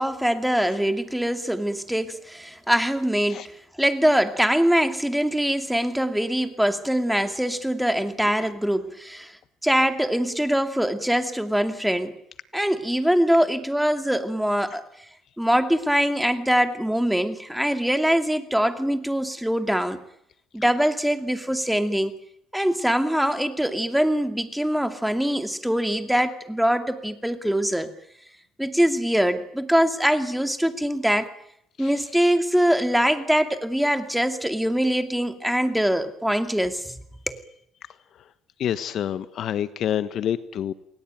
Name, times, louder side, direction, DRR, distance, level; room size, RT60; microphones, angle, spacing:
voice 1, 0.0-3.4 3.8-9.3 9.6-12.1 12.5-14.8 15.4-20.0 20.5-22.2 22.5-27.9 28.6-31.3 31.8-37.0 37.3-37.4, equal, ahead, 7 dB, 2.6 m, -23 dB
voice 2, 38.6-40.7, left 10 dB, 55° left, 13 dB, 1.2 m, -28 dB
29.0 x 20.5 x 9.2 m, 0.74 s
cardioid pair, 120°, 0 cm